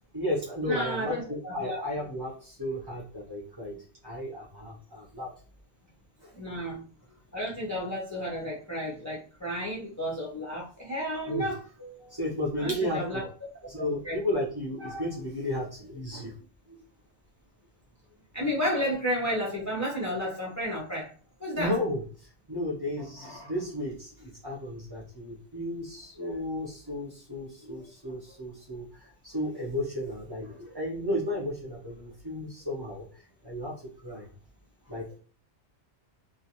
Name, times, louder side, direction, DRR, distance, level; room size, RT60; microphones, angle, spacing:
voice 1, 0.1-5.3 6.2-6.5 11.3-11.5 11.8-13.2 13.6-16.3 16.7-16.8 21.5-34.3 34.8-35.2, left 1 dB, 25° right, -4 dB, 0.6 m, -34 dB
voice 2, 0.7-1.8 6.3-6.8 7.3-11.6 12.6-13.3 14.0-14.2 18.3-21.1 21.4-21.7, equal, 30° left, -3 dB, 0.3 m, -32 dB
2.4 x 2.2 x 2.8 m, 0.38 s
omnidirectional pair, 1.2 m